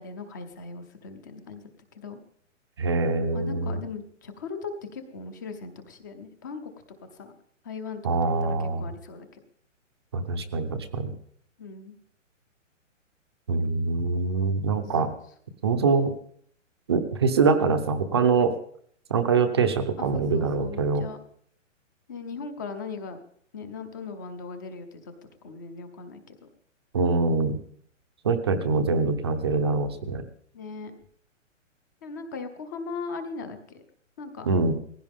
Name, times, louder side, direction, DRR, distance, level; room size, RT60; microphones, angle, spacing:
voice 1, 0.0-1.6 1.9-2.2 3.3-6.7 7.1-7.3 7.6-8.0 8.6-9.4 11.6-12.0 14.7-14.8 20.0-21.2 22.1-23.2 23.5-25.1 25.4-26.4 30.5-30.9 32.0-33.8 34.2-34.5, left 4 dB, 15° left, 9 dB, 0.7 m, -38 dB
voice 2, 2.8-3.8 8.0-8.9 10.1-11.1 13.5-15.1 15.6-16.1 16.9-18.5 19.1-21.0 26.9-27.6 28.2-30.2 34.4-34.7, right 4 dB, 20° right, 7 dB, 0.7 m, -24 dB
19.0 x 15.5 x 3.6 m, 0.63 s
hypercardioid pair, 175°, 39 cm